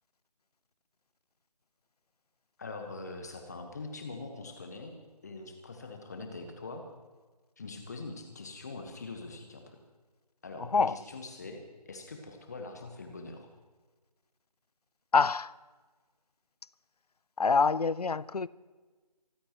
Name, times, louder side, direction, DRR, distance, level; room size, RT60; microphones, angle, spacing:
voice 1, 2.6-4.9 5.2-6.8 7.6-9.8 10.4-13.5, left 3 dB, 25° left, 1.3 m, -43 dB
voice 2, 15.1-15.5 17.4-18.5, left 4 dB, 65° left, 0.5 m, -25 dB
26.0 x 15.0 x 3.1 m
figure-of-eight pair, 160°, 21 cm